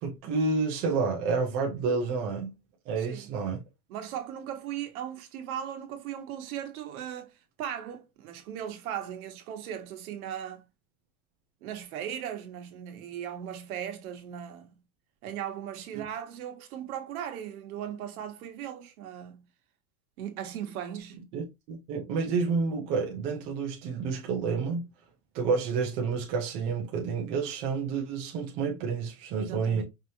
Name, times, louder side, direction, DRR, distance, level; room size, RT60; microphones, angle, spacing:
voice 1, 0.0-2.5 2.9-3.6 15.9-16.0 21.3-24.9 25.3-29.8, right 4 dB, 15° right, 0.3 m, -29 dB
voice 2, 3.0-3.3 3.9-10.6 11.6-14.8 15.2-19.4 20.2-21.2 29.4-29.8, right 9 dB, 70° right, 1.2 m, -38 dB
4.8 x 2.7 x 2.6 m
supercardioid pair, 165°, 45 cm